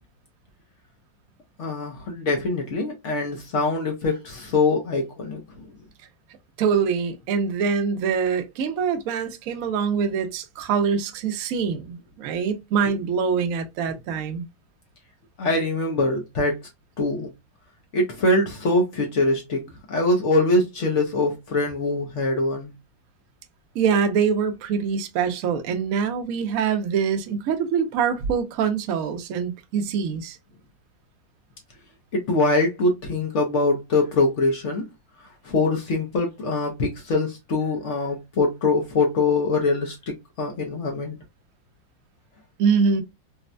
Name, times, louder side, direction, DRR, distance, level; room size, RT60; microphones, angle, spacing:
voice 1, 1.6-5.7 15.4-16.7 17.0-17.3 17.9-19.6 19.9-22.7 32.1-34.9 35.4-40.0 40.4-41.2, left 2 dB, 80° left, 0.6 m, -23 dB
voice 2, 6.6-14.4 23.7-30.4 42.6-43.0, right 6 dB, 75° right, 0.7 m, -24 dB
4.1 x 2.1 x 2.4 m
omnidirectional pair, 2.2 m